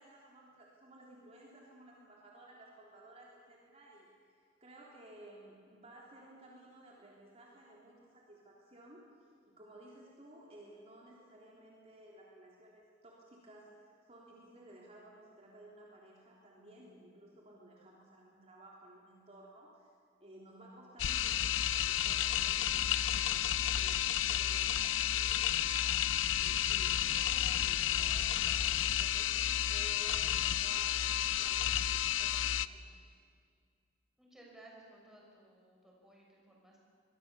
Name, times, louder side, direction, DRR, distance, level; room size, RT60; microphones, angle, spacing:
voice 1, 0.0-9.0 9.4-19.9 20.2-33.1, right 1 dB, 35° right, -3 dB, 3.6 m, -56 dB
sound 1, 21.0-32.7, left 11 dB, 75° left, 0.6 m, -31 dB
voice 2, 34.2-36.8, right 1 dB, ahead, -3 dB, 6.1 m, -58 dB
26.0 x 22.0 x 7.2 m, 2.1 s
head